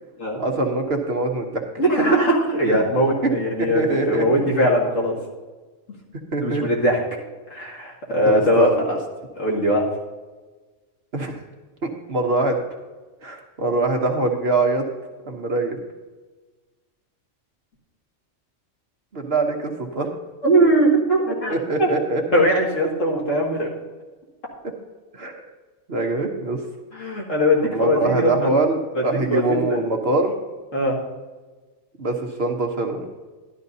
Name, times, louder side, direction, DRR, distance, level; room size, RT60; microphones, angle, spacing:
voice 1, 0.4-1.6 3.6-4.2 6.3-6.6 8.2-9.0 11.1-11.4 11.8-12.6 13.2-14.9 15.3-15.8 19.1-20.1 21.5-22.4 25.1-25.4 25.9-26.6 27.7-30.3 32.0-33.1, right 2 dB, 50° right, 2 dB, 1.3 m, -23 dB
voice 2, 1.8-5.2 6.4-7.0 7.5-9.0 9.4-9.9 20.4-21.5 21.8-21.9 22.3-23.7 26.9-28.5 29.0-29.1 29.3-29.8 30.7-30.9, equal, 70° left, -3 dB, 2.4 m, -20 dB
12.5 x 11.5 x 2.7 m, 1.3 s
omnidirectional pair, 1.4 m